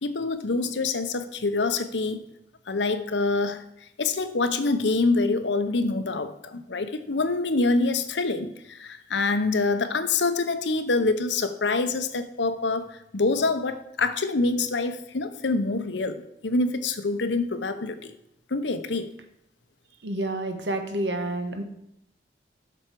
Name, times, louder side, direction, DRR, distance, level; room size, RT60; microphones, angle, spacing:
voice 1, 0.0-2.2 2.7-3.6 4.0-18.1 18.5-19.1, left 3 dB, 90° left, 10 dB, 0.8 m, -26 dB
voice 2, 20.0-21.6, right 1 dB, 80° right, 6 dB, 1.3 m, -29 dB
7.9 x 6.2 x 4.6 m, 0.80 s
head